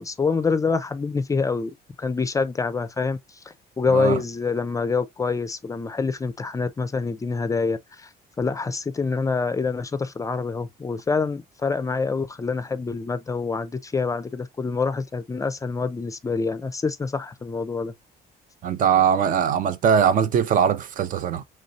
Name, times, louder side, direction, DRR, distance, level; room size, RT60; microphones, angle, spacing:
voice 1, 0.0-3.2 3.8-8.1 8.4-17.9, left 4 dB, 20° left, 0.4 m, -26 dB
voice 2, 3.9-4.2 18.6-21.4, right 8 dB, 50° right, 0.5 m, -21 dB
4.0 x 3.1 x 2.6 m
cardioid pair, 110°, 17 cm